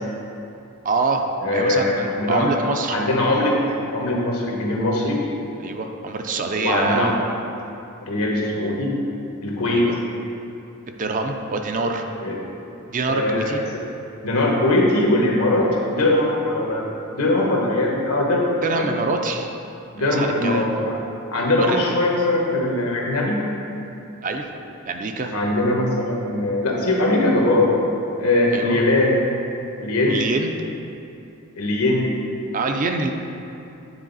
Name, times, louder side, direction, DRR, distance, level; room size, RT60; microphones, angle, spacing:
voice 1, 0.8-3.0 5.6-7.2 9.7-10.0 10.9-12.0 12.9-13.6 18.6-19.5 20.0-20.7 21.6-21.8 24.2-24.5 24.9-25.3 28.5-28.8 30.1-30.6 32.5-33.1, right 3 dB, 40° right, 4 dB, 0.4 m, -25 dB
voice 2, 1.4-2.5 2.9-3.6 3.9-5.2 6.6-7.2 8.0-8.9 9.4-9.9 12.2-12.4 13.1-13.8 14.2-18.4 18.7-18.9 19.9-21.0 21.3-23.4 25.3-27.7 28.2-29.2 29.8-30.2 31.6-32.1, left 2 dB, 80° left, -2 dB, 1.2 m, -21 dB
9.0 x 4.0 x 4.0 m, 2.7 s
head